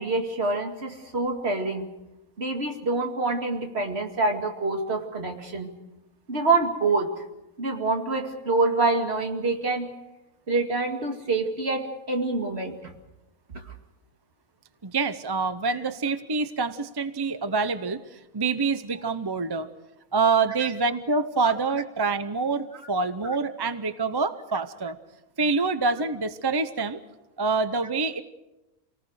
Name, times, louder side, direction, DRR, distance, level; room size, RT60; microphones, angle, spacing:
voice 1, 0.0-1.9 2.4-5.7 6.3-7.2 7.6-9.9 10.5-12.9 20.6-20.7 21.4-21.5, right 3 dB, 45° right, 3 dB, 2.5 m, -26 dB
voice 2, 14.8-19.7 20.1-25.0 25.4-27.0 27.4-28.2, right 4 dB, 25° right, 11 dB, 0.5 m, -26 dB
27.0 x 18.5 x 6.5 m, 0.97 s
omnidirectional pair, 1.6 m